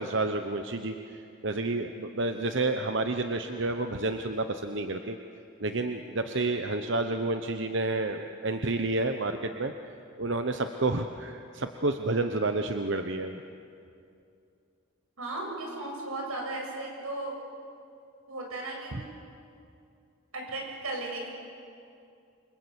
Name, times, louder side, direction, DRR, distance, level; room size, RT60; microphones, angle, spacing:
voice 1, 0.0-5.2 5.6-9.7 10.2-13.4 18.9-19.0, right 2 dB, 55° right, 6 dB, 1.0 m, -30 dB
voice 2, 15.2-17.3 18.3-19.0 20.3-21.3, right 2 dB, 85° right, 0 dB, 7.5 m, -36 dB
28.5 x 25.0 x 8.2 m, 2.5 s
head